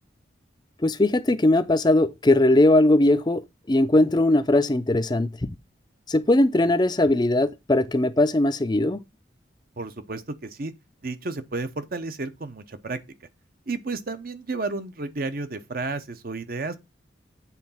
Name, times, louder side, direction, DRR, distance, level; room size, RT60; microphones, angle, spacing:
voice 1, 0.8-3.4 3.7-5.3 6.1-9.0, left 1 dB, 25° left, 0.5 m, -19 dB
voice 2, 9.8-10.7 11.0-13.0 13.7-16.8, right 3 dB, 50° right, 0.8 m, -32 dB
8.4 x 3.8 x 5.6 m
head